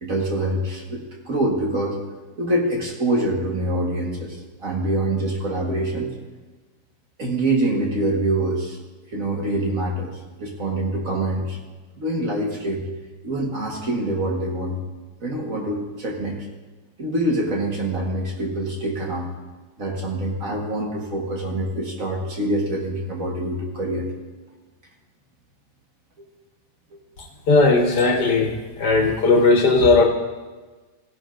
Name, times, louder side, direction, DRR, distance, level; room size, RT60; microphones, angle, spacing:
voice 1, 0.0-2.0 2.4-6.1 7.2-8.8 9.1-10.1 10.4-11.6 12.0-12.8 13.2-14.8 15.2-16.5 17.0-19.3 19.8-24.1 26.9-27.0, right 1 dB, 45° right, -1 dB, 1.8 m, -25 dB
voice 2, 27.5-28.5 28.8-30.0, left 3 dB, 60° left, 2 dB, 1.8 m, -16 dB
16.5 x 10.5 x 2.6 m, 1.3 s
omnidirectional pair, 2.1 m